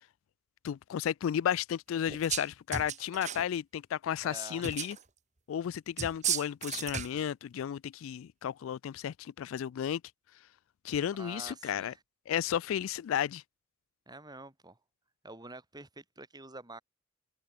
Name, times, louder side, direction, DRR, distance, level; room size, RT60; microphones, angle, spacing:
voice 1, 0.6-5.0 5.5-10.0 10.8-11.9 12.3-13.4, left 9 dB, 75° left, 0.3 m, -33 dB
sound 1, 2.1-2.5 2.7-3.5 4.6-5.0 6.0-7.2, right 8 dB, 35° right, 1.8 m, -34 dB
voice 2, 4.2-4.7 11.2-12.0 14.1-14.8 15.2-16.8, right 2 dB, 20° right, 4.7 m, -47 dB
head